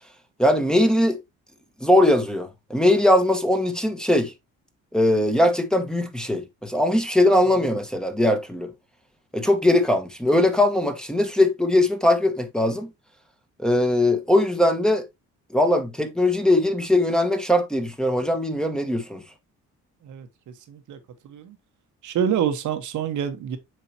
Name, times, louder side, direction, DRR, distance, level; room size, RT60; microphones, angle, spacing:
voice 1, 0.4-1.2 1.8-4.3 4.9-8.7 9.3-12.9 13.6-15.1 15.5-19.2, left 1 dB, ahead, 1.3 m, -20 dB
voice 2, 20.0-21.0 21.2-21.6 22.0-23.6, right 8 dB, 75° right, 1.4 m, -27 dB
7.7 x 4.8 x 2.9 m
cardioid pair, 90°, 30 cm